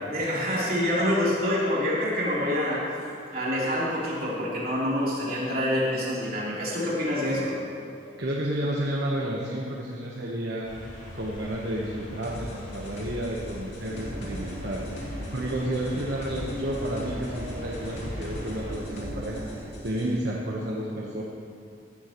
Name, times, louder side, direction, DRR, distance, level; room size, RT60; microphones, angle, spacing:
voice 1, 0.1-2.9 3.3-7.5, left 1 dB, 50° right, -7 dB, 3.5 m, -26 dB
voice 2, 8.2-19.4 19.8-21.2, right 1 dB, 65° right, -3 dB, 1.2 m, -31 dB
sound 1, 10.6-18.7, left 1 dB, 45° left, 2.5 m, -43 dB
sound 2, 12.2-20.1, left 1 dB, 80° left, 2.5 m, -41 dB
sound 3, 13.8-19.7, equal, 90° right, 1.6 m, -39 dB
16.5 x 13.0 x 3.1 m, 2.5 s
head